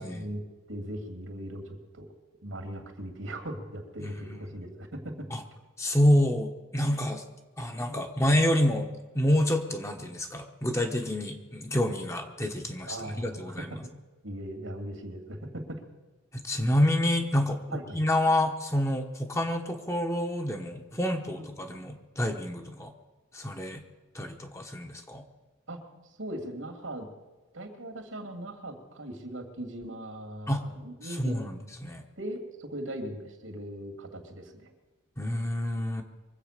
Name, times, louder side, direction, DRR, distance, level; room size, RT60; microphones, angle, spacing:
voice 1, 0.0-2.1 2.4-5.3 12.9-13.9 14.2-15.8 17.7-18.0 21.3-21.5 22.6-22.7 25.7-25.8 26.2-27.1 27.5-31.4 32.2-34.7, right 1 dB, 80° right, 5 dB, 2.7 m, -39 dB
voice 2, 4.0-4.5 5.3-5.4 5.8-7.2 7.6-8.9 9.1-13.7 16.3-22.9 23.3-23.8 24.1-25.2 30.5-30.6 31.2-32.0 35.2-36.0, left 1 dB, 15° left, 4 dB, 1.1 m, -28 dB
23.5 x 8.2 x 6.7 m, 1.2 s
head